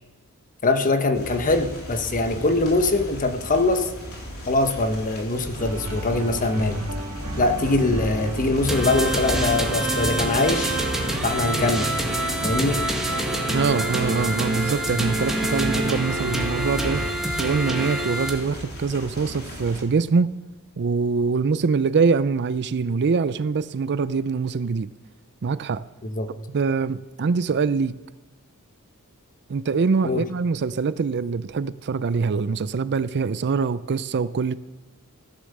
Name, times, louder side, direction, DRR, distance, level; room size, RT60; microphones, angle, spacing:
voice 1, 0.6-3.9 4.5-6.8 7.4-10.7 11.2-12.0 12.4-12.8 26.0-26.3 30.0-30.2, left 2 dB, 35° left, 1.0 m, -22 dB
sound 1, 1.1-19.8, equal, 70° left, 3.7 m, -38 dB
sound 2, 5.6-17.1, right 1 dB, 75° right, 1.6 m, -32 dB
sound 3, 8.7-18.3, right 1 dB, ahead, 1.7 m, -26 dB
voice 2, 13.5-17.1 17.4-20.3 20.8-24.9 25.4-25.8 26.5-27.9 29.5-34.5, right 5 dB, 50° right, 0.5 m, -24 dB
14.5 x 10.5 x 6.7 m
head